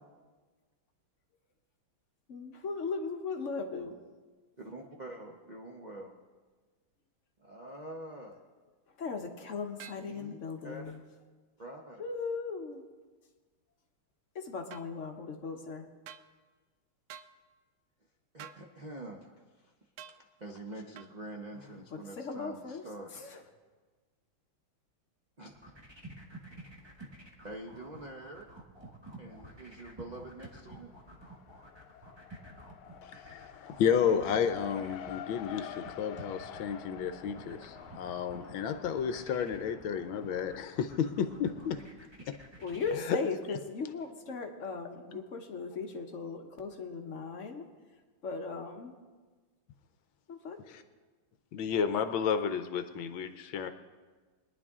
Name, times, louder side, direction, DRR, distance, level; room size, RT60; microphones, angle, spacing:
voice 1, 2.3-4.0 9.0-11.0 12.0-12.8 14.3-15.9 21.9-22.8 23.1-23.4 42.6-47.7 48.2-48.9 50.3-50.6, left 4 dB, 50° left, 4 dB, 1.0 m, -38 dB
voice 2, 4.6-6.1 7.4-8.4 10.0-10.4 10.6-10.8 11.6-12.0 18.3-19.7 20.0-23.4 25.4-25.5 27.4-28.5 29.2-30.9 44.3-44.4 45.1-45.2, right 1 dB, 65° right, 0 dB, 0.4 m, -46 dB
sound 1, 9.8-10.1 14.7-14.9 16.1-16.3 17.1-17.3 18.4-18.6 20.0-20.2 21.0-21.1, right 9 dB, 85° right, 0.9 m, -47 dB
sound 2, 25.5-42.9, right 2 dB, 15° right, 1.1 m, -51 dB
Race car auto racing, 29.3-30.1 30.4-41.7, left 10 dB, 90° left, 1.5 m, -49 dB
voice 3, 33.0-41.8 42.3-42.4 42.9-43.2 50.7-50.8 51.5-53.7, left 7 dB, 70° left, 9 dB, 1.4 m, -32 dB
21.5 x 10.5 x 3.6 m, 1.4 s
omnidirectional pair, 2.4 m